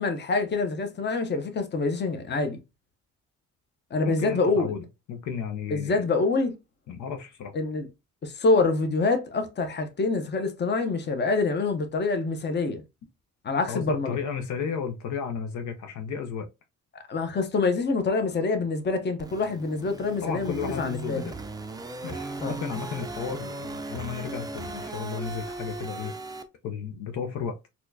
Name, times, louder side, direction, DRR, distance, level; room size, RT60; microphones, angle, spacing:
voice 1, 0.0-2.6 3.9-4.7 5.7-6.5 7.5-7.9 8.2-12.8 13.4-14.2 17.1-21.3 22.4-22.6, left 3 dB, 35° left, 0.8 m, -26 dB
voice 2, 4.0-4.8 5.1-6.0 6.9-7.5 13.7-16.5 20.2-21.4 22.0-26.1 26.6-27.6, left 6 dB, 70° left, 0.6 m, -33 dB
sound 1, 19.2-26.4, right 2 dB, 15° right, 0.4 m, -37 dB
4.2 x 2.3 x 2.6 m
cardioid pair, 90°, 30 cm